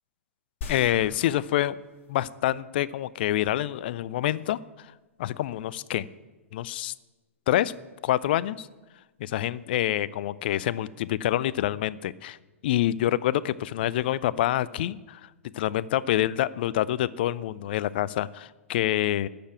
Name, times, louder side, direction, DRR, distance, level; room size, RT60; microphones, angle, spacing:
sound 1, 0.6-2.4 2.9-3.0, left 5 dB, 30° left, 2.8 m, -41 dB
voice 1, 0.7-1.8 2.1-4.6 5.2-6.1 6.5-6.9 7.5-7.7 8.0-8.7 9.2-12.4 12.6-15.2 15.5-19.3, left 13 dB, 45° left, 19 dB, 0.4 m, -26 dB
11.5 x 6.9 x 8.9 m, 1.2 s
figure-of-eight pair, 110°, 7 cm